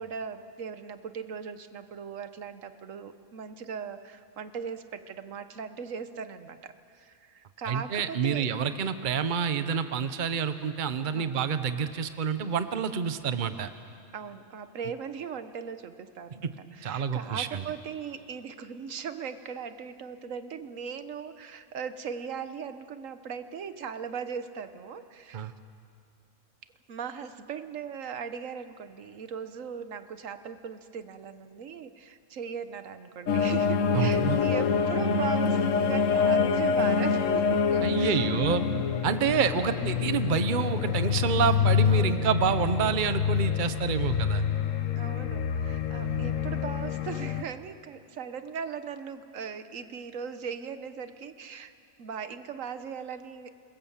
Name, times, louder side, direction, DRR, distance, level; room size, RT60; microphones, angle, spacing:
voice 1, 0.0-8.5 11.1-11.4 14.1-25.5 26.9-38.3 41.8-42.3 42.8-43.0 44.9-51.7 52.0-53.5, right 6 dB, 80° right, 11 dB, 1.3 m, -39 dB
voice 2, 7.7-13.7 16.3-16.5 16.8-17.7 25.3-25.5 33.9-34.4 37.8-38.6 39.0-44.4, right 7 dB, 40° right, 11 dB, 1.0 m, -28 dB
sound 1, 33.3-47.4, left 6 dB, 75° left, 1.3 m, -26 dB
26.5 x 21.5 x 7.3 m, 2.4 s
omnidirectional pair, 1.3 m